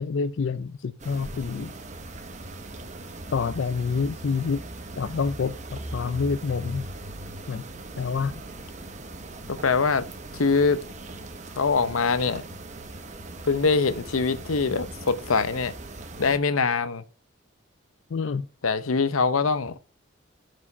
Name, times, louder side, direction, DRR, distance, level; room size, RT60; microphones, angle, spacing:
voice 1, 0.0-1.7 3.3-4.6 5.0-6.9 7.5-7.6 8.0-8.4 18.1-18.5, left 5 dB, 60° left, 0.4 m, -27 dB
sound 1, 1.0-16.4, right 2 dB, 35° right, 1.0 m, -39 dB
voice 2, 9.5-10.1 10.3-10.8 11.6-12.4 13.4-15.7 16.2-17.0 18.6-19.8, left 4 dB, 85° left, 0.8 m, -23 dB
9.7 x 5.0 x 5.4 m
head